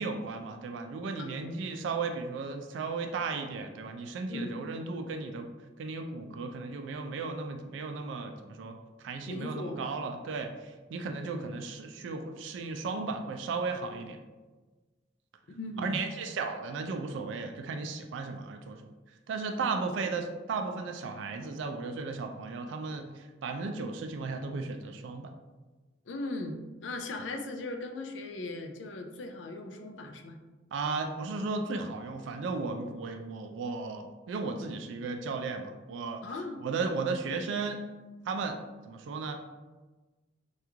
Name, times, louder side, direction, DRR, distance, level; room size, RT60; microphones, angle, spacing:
voice 1, 0.0-5.5 5.8-14.2 15.8-18.8 19.3-25.3 30.7-36.2 36.6-37.8 38.2-38.6 38.9-39.4, right 4 dB, 75° right, 5 dB, 0.3 m, -35 dB
voice 2, 9.3-9.8 15.6-16.0 19.6-19.7 26.1-26.5 26.8-30.4 36.2-36.6, left 2 dB, 75° left, 4 dB, 0.4 m, -38 dB
3.0 x 2.4 x 3.4 m, 1.2 s
head